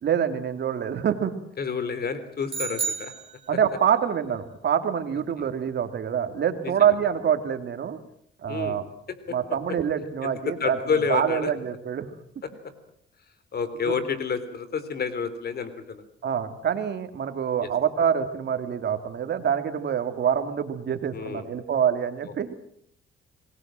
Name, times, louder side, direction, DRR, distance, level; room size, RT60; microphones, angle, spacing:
voice 1, 0.0-1.3 3.5-8.0 8.4-8.8 9.3-10.8 11.1-12.1 13.9-14.0 16.2-22.5, right 8 dB, 60° right, 8 dB, 2.6 m, -26 dB
voice 2, 1.6-3.1 6.6-6.9 8.5-8.8 9.1-9.2 10.2-11.5 12.6-12.7 13.5-16.0 17.6-17.7 21.1-21.5, left 5 dB, 50° left, 13 dB, 3.5 m, -29 dB
sound 1, 2.5-4.0, right 6 dB, 25° right, 3.9 m, -32 dB
27.5 x 19.5 x 7.6 m, 0.68 s
cardioid pair, 90°, 20 cm